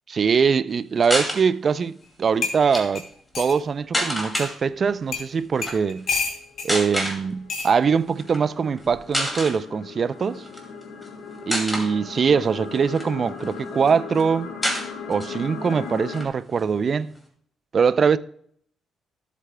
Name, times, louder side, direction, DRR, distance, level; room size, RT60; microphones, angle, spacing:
voice 1, 0.1-3.0 3.4-6.1 6.6-10.5 11.5-14.5 15.1-17.1 17.7-18.2, right 6 dB, 45° right, 0.4 m, -22 dB
sound 1, 1.0-1.4 2.5-2.8 3.9-4.5 5.6-5.8 6.7-7.2 8.2-8.4 8.8-8.9 9.1-9.6 10.5-11.1 11.5-11.9 12.5-13.5 13.9-14.0 14.2-14.3 14.6-15.4 15.7-15.8 16.1-17.2, equal, 10° left, 2.3 m, -27 dB
sound 2, 2.0-2.1 2.4-3.6 4.4-4.5 5.1-5.3 5.6-6.7 7.5-7.7 8.8-9.1, left 5 dB, 60° left, 2.6 m, -29 dB
sound 3, 4.9-5.2 6.1-16.2, left 5 dB, 90° left, 1.3 m, -38 dB
14.0 x 8.2 x 2.2 m
cardioid pair, 90°, 0 cm